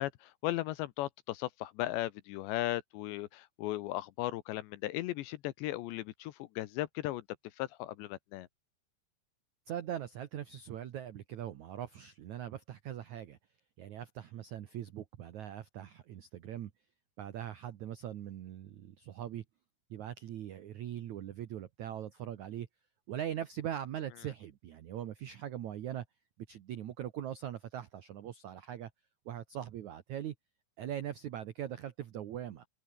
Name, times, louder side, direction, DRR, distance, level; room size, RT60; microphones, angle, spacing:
voice 1, 0.0-7.2 7.6-8.5, left 16 dB, 75° left, 3.0 m, -36 dB
voice 2, 9.7-13.4 13.8-16.7 17.2-19.4 19.9-22.7 23.1-26.0 26.5-28.9 29.2-30.3 30.8-32.7, right 11 dB, 85° right, 1.6 m, -41 dB
omnidirectional pair, 5.3 m